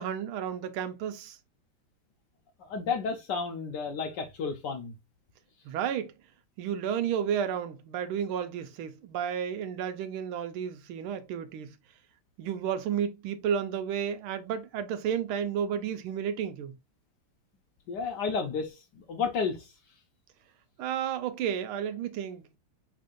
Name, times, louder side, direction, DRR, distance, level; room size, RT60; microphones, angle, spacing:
voice 1, 0.0-1.4 5.6-6.1 6.6-11.7 12.4-16.7 20.8-22.6, right 8 dB, 80° right, 1.5 m, -32 dB
voice 2, 2.6-4.9 17.9-19.7, left 5 dB, 70° left, 1.1 m, -32 dB
5.1 x 3.7 x 2.5 m
omnidirectional pair, 2.3 m